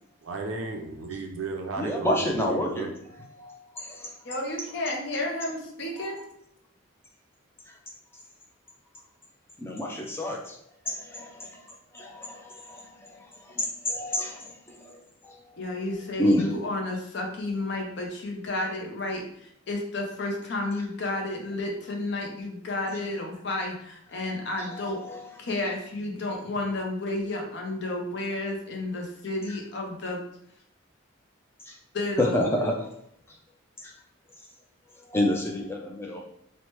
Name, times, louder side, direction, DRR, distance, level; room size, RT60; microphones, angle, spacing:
voice 1, 0.2-2.9, right 3 dB, 80° right, 4 dB, 0.5 m, -34 dB
voice 2, 1.8-4.4 5.9-6.2 7.7-7.8 9.6-10.6 10.9-11.5 11.9-12.8 13.1-15.6 16.2-16.5 24.1-25.5 29.5-29.6 31.6-31.8 32.2-32.9 33.8-34.0 34.9-36.2, left 1 dB, 10° left, 1 dB, 0.4 m, -30 dB
voice 3, 4.3-6.2 15.6-25.0 25.4-30.2 31.9-32.4, left 2 dB, 55° left, 1 dB, 0.6 m, -31 dB
3.0 x 2.1 x 3.0 m, 0.70 s
head